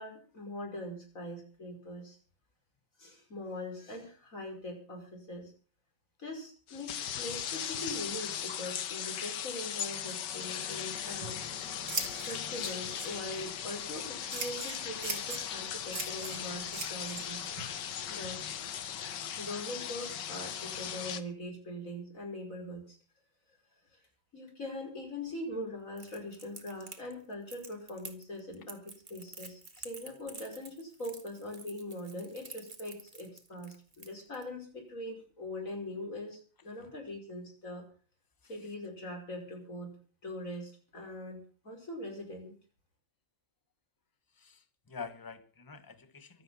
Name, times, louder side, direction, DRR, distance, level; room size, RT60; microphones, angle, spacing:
voice 1, 0.0-2.2 3.0-5.5 6.2-11.4 12.3-17.4 18.1-18.4 19.4-23.0 23.9-24.0 24.3-37.9 38.5-39.9 40.2-42.6, left 1 dB, 45° left, 1 dB, 5.9 m, -42 dB
sound 1, 6.7-21.2, left 9 dB, 70° left, 1.6 m, -38 dB
Scissors, 11.0-19.1, right 4 dB, 80° right, 3.6 m, -43 dB
Crackle, 26.0-34.4, right 3 dB, 25° right, 1.9 m, -49 dB
voice 2, 44.4-46.4, left 5 dB, 15° left, 11 dB, 0.9 m, -46 dB
24.0 x 8.8 x 5.6 m, 0.41 s
omnidirectional pair, 2.0 m